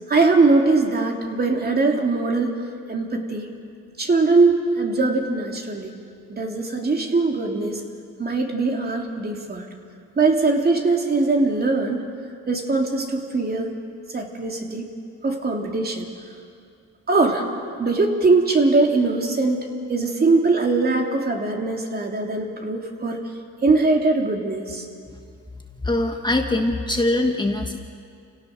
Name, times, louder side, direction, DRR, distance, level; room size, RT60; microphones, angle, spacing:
voice 1, 0.1-2.5 2.9-3.5 4.0-5.9 6.3-7.8 8.2-9.7 10.2-12.0 12.5-13.7 14.1-14.9 15.2-16.1 17.1-17.5 17.8-19.6 19.9-23.2 23.6-24.9, right 3 dB, 30° right, 1 dB, 3.0 m, -21 dB
voice 2, 25.8-27.8, left 2 dB, 15° left, 3 dB, 1.4 m, -22 dB
28.5 x 17.5 x 6.5 m, 2.3 s
cardioid pair, 90°, 30 cm